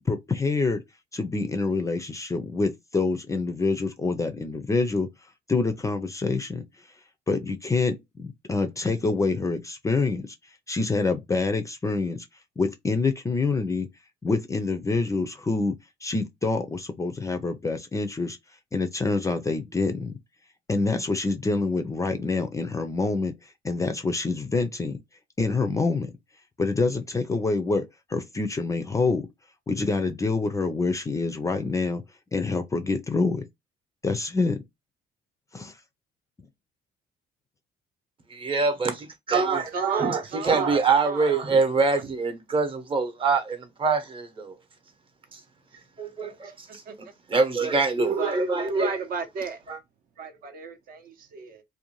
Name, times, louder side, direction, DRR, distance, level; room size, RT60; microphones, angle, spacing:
voice 1, 0.1-0.8 1.1-5.1 5.5-6.6 7.3-10.4 10.7-12.2 12.6-13.9 14.2-18.4 18.7-20.2 20.7-25.0 25.4-26.1 26.6-29.3 29.7-32.0 32.3-33.5 34.0-34.6 35.5-35.8, left 3 dB, 20° left, 0.4 m, -26 dB
voice 2, 38.3-44.5 45.3-45.4 46.0-46.8 47.3-49.0 49.7-49.8, right 4 dB, 30° right, 0.8 m, -24 dB
voice 3, 39.7-40.7 41.0-41.3 41.8-42.1 46.4-46.9 48.2-49.6 50.2-51.6, right 4 dB, 60° right, 0.7 m, -35 dB
2.5 x 2.2 x 2.9 m
cardioid pair, 110°, 17 cm